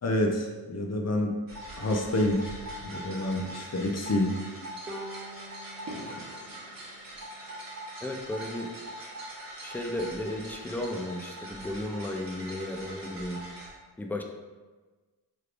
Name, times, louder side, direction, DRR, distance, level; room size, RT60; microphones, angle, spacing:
voice 1, 0.0-1.3 1.8-2.4 2.8-4.3, left 1 dB, 35° left, 2 dB, 0.7 m, -28 dB
sound 1, 1.5-13.7, right 1 dB, 50° right, 1.1 m, -42 dB
Bowed string instrument, 4.9-8.2, right 1 dB, 20° right, 0.7 m, -46 dB
voice 2, 8.0-8.7 9.6-13.4 14.0-14.2, left 1 dB, 5° left, 2 dB, 0.4 m, -34 dB
3.2 x 3.1 x 2.5 m, 1.3 s
supercardioid pair, 45°, 43 cm